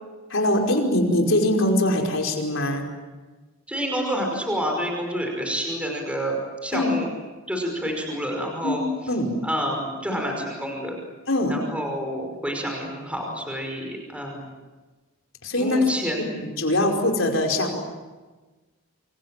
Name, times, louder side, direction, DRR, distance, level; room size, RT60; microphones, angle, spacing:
voice 1, 0.3-2.9 6.7-6.9 8.6-8.8 9.1-9.4 11.3-11.6 15.4-15.9 16.3-17.8, left 1 dB, 60° left, 3 dB, 5.2 m, -22 dB
voice 2, 3.7-7.1 7.5-8.8 9.4-11.0 11.5-14.4 15.6-16.3 16.7-16.8, equal, 5° right, 1 dB, 5.3 m, -28 dB
27.5 x 27.5 x 7.7 m, 1.3 s
head